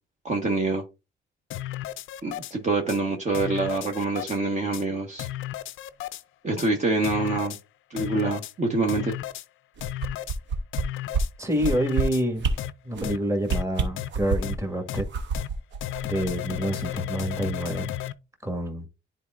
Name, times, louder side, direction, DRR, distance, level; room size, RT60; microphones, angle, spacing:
voice 1, 0.2-0.8 2.2-5.3 6.4-7.6 7.9-9.1, right 3 dB, 35° right, 1.3 m, -26 dB
sound 1, 1.5-2.5 2.9-3.0 3.3-4.4 4.7-4.8 5.2-6.2 6.6-6.7 7.0-7.6 8.0-8.5 8.9-9.5 9.8-10.4 10.7-11.3 11.7-12.2 12.6-12.7 13.0-13.2 13.5-13.6 14.0-14.1 14.4-14.6 14.9-15.0 15.3-15.5 15.8-18.1, left 14 dB, 80° left, 0.5 m, -33 dB
sound 2, 9.8-10.8 11.1-11.2 11.6-12.0 12.4-12.5 12.9-13.1 13.4-14.6 15.0-16.6 16.9-17.0, right 5 dB, 65° right, 1.0 m, -27 dB
voice 2, 11.4-12.5 12.8-15.1 16.0-17.9 18.4-18.9, equal, 15° right, 1.8 m, -27 dB
10.0 x 4.3 x 2.5 m
cardioid pair, 90°, 20 cm